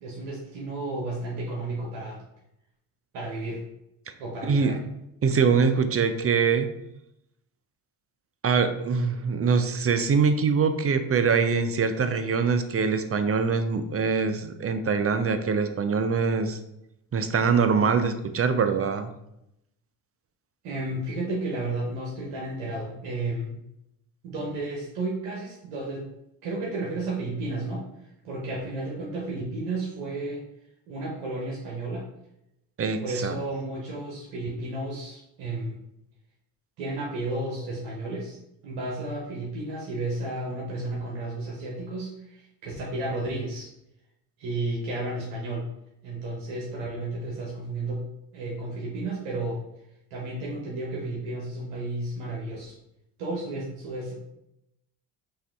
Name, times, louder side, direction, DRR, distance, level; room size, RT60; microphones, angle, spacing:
voice 1, 0.0-2.2 3.1-3.6 4.2-4.8 20.6-23.5 24.2-26.0 26.4-27.8 28.2-30.4 30.9-32.0 33.0-35.8 36.8-38.4 38.6-43.7 44.4-45.7 46.0-48.1 48.3-49.6 50.1-52.7 53.2-54.1, right 2 dB, 75° right, -3 dB, 1.1 m, -32 dB
voice 2, 4.4-4.7 5.2-6.7 8.4-16.6 17.1-19.1 32.8-33.3, right 5 dB, 30° right, 9 dB, 0.6 m, -23 dB
5.6 x 2.6 x 3.4 m, 0.83 s
hypercardioid pair, 55°, 48 cm